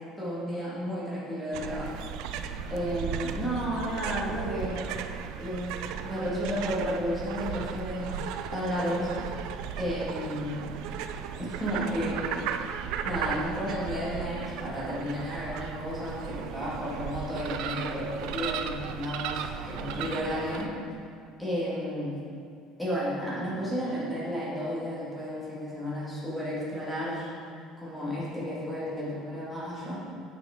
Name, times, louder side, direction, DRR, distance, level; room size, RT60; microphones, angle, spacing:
voice 1, 0.2-1.9 2.7-4.9 5.4-5.7 6.0-8.2 8.5-9.1 9.8-10.7 11.4-12.7 13.0-20.7 21.4-22.1 22.8-27.3 27.8-30.0, equal, ahead, -9 dB, 1.9 m, -32 dB
sound 1, 1.5-20.7, right 8 dB, 65° right, 0.3 m, -36 dB
9.0 x 5.1 x 3.8 m, 2.3 s
cardioid pair, 160°, 0 cm